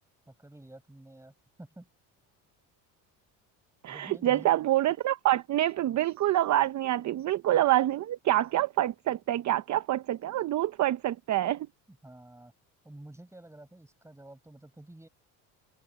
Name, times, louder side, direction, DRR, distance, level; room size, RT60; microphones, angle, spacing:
voice 1, 0.3-1.3 1.6-1.9 3.9-4.5 11.9-12.5 12.8-15.1, right 1 dB, 5° right, 5.8 m, -49 dB
voice 2, 3.8-11.7, right 14 dB, 50° right, 0.7 m, -26 dB
cardioid pair, 105°, 38 cm